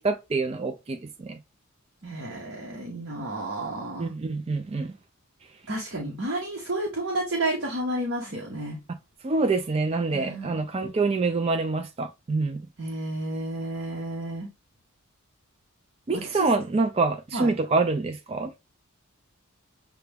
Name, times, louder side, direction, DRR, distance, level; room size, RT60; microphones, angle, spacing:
voice 1, 0.0-1.4 4.0-4.9 9.2-12.6 16.1-18.5, right 3 dB, 30° right, 0.4 m, -26 dB
voice 2, 2.0-4.1 5.7-8.8 10.1-10.6 12.8-14.5 16.1-16.5 17.3-17.5, right 1 dB, 60° right, 1.1 m, -31 dB
6.7 x 2.3 x 3.4 m
head